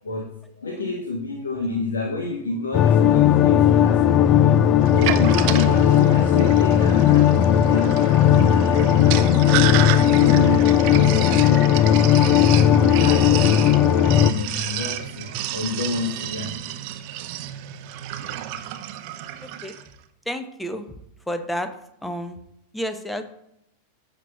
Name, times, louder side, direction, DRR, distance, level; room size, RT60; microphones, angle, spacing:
voice 1, 0.0-4.6 5.0-9.8 10.2-16.6, left 3 dB, 70° left, 2 dB, 1.1 m, -30 dB
sound 1, 2.7-14.3, left 10 dB, 35° left, 0.3 m, -16 dB
Sink (filling or washing), 4.8-19.9, right 11 dB, 45° right, 0.6 m, -31 dB
voice 2, 19.4-19.7 20.3-20.9 21.3-21.7 22.0-22.4 22.7-23.2, equal, 5° left, 8 dB, 0.9 m, -30 dB
15.0 x 6.3 x 2.4 m, 0.81 s
figure-of-eight pair, 90°, 0 cm